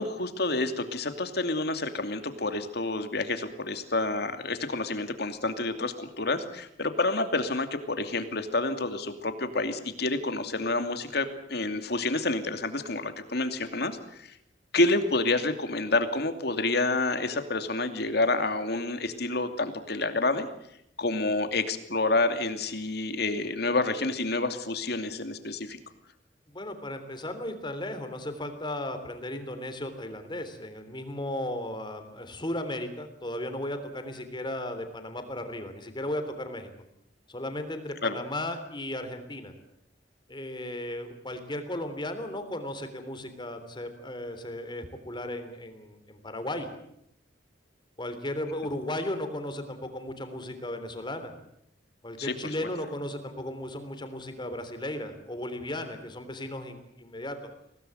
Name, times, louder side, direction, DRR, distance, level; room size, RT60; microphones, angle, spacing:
voice 1, 0.0-14.3 14.7-20.5 21.0-25.8 38.0-38.1 52.2-52.3, left 2 dB, 65° left, 8 dB, 2.6 m, -28 dB
voice 2, 26.5-36.7 37.3-39.5 40.3-46.7 48.0-51.3 52.0-57.4, left 1 dB, 25° left, 8 dB, 3.4 m, -35 dB
24.0 x 18.0 x 9.1 m, 0.75 s
head